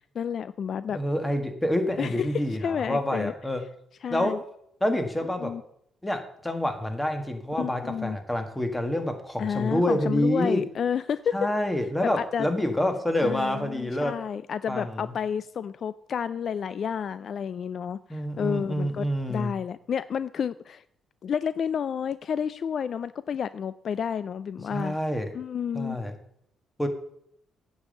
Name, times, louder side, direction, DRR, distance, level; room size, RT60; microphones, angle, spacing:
voice 1, 0.0-1.0 2.0-3.3 4.0-4.4 5.4-5.6 7.5-8.2 9.4-11.3 12.0-12.5 13.2-20.8 21.2-25.0 25.3-26.0, left 7 dB, 55° left, 16 dB, 0.3 m, -30 dB
voice 2, 0.9-3.6 4.1-4.3 4.8-5.5 6.0-10.6 11.3-14.1 14.7-15.1 18.1-19.5 24.7-25.3 25.7-26.1 26.8-26.9, left 1 dB, 10° left, 6 dB, 1.7 m, -27 dB
9.5 x 5.4 x 7.8 m, 0.71 s
cardioid pair, 90°, 0 cm